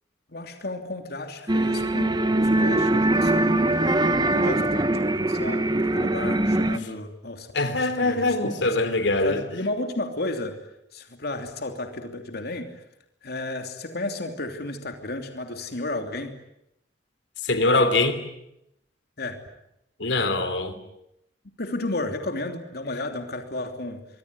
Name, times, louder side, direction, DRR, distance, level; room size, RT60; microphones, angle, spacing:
voice 1, 0.3-3.6 4.3-4.9 5.3-5.7 5.9-8.4 9.2-10.6 10.9-12.8 13.2-16.3 19.2-19.4 21.6-24.0, left 2 dB, 60° left, 5 dB, 3.0 m, -33 dB
sound 1, 1.5-6.8, right 1 dB, 25° right, 1.3 m, -22 dB
voice 2, 7.5-9.4 17.4-18.2 20.0-20.7, left 2 dB, 85° left, 9 dB, 3.2 m, -23 dB
25.5 x 23.5 x 9.6 m, 0.82 s
head